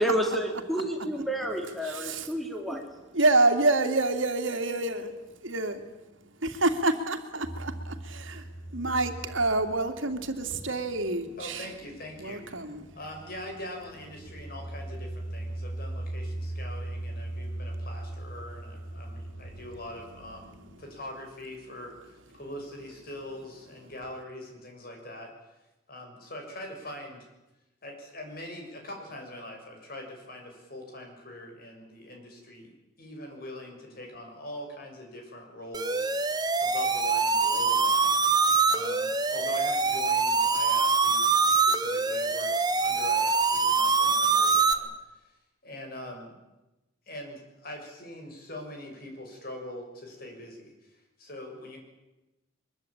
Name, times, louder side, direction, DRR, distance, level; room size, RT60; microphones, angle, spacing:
voice 1, 0.0-2.9, equal, ahead, 3 dB, 2.8 m, -30 dB
voice 2, 1.8-2.3 3.1-5.1 5.4-5.8 6.4-8.4 8.7-11.7 12.2-12.9, right 2 dB, 80° right, 7 dB, 2.6 m, -27 dB
sound 1, 7.4-20.8, right 1 dB, 65° left, 6.0 m, -40 dB
voice 3, 11.4-12.4 12.9-21.9 22.4-25.3 25.9-27.2 27.8-32.7 33.0-36.1 36.6-38.1 38.6-44.9 45.6-46.3 47.1-50.7 51.2-51.8, left 1 dB, 50° left, 2 dB, 6.9 m, -42 dB
sound 2, 35.7-44.7, right 4 dB, 20° right, 1.4 m, -24 dB
23.0 x 22.5 x 8.9 m, 1.0 s
head